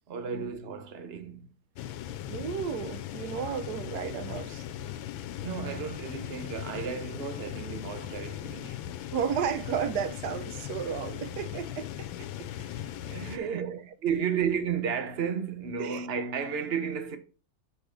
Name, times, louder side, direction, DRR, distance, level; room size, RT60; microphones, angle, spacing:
voice 1, 0.1-1.5 5.4-8.9 13.0-13.7 14.0-17.2, right 7 dB, 45° right, 0.8 m, -33 dB
sound 1, 1.8-13.4, left 11 dB, 85° left, 1.4 m, -38 dB
voice 2, 2.3-4.9 9.1-12.8 13.1-13.8 15.8-16.1, right 8 dB, 65° right, 1.1 m, -34 dB
6.6 x 5.0 x 5.0 m
omnidirectional pair, 2.1 m